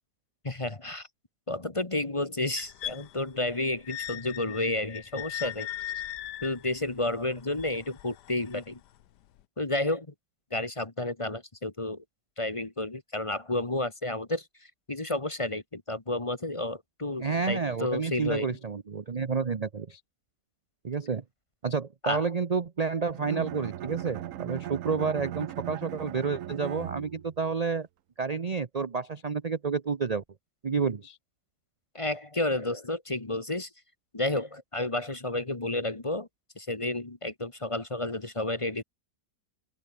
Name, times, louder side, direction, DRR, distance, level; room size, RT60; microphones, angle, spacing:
voice 1, 0.4-1.1 1.5-5.7 6.4-8.8 9.6-10.1 10.5-12.0 12.4-14.4 14.9-18.5 22.0-22.3 31.9-33.7 34.1-36.3 36.6-38.8, left 2 dB, 20° left, 1.2 m, -31 dB
sound 1, 2.6-8.6 9.4-9.5, left 13 dB, 75° left, 1.4 m, -39 dB
voice 2, 17.2-20.0 20.8-21.2 21.6-27.9 28.2-30.2 30.6-31.2, right 5 dB, 45° right, 0.5 m, -30 dB
Bowed string instrument, 23.1-27.4, right 12 dB, 60° right, 0.9 m, -38 dB
open air
omnidirectional pair, 1.9 m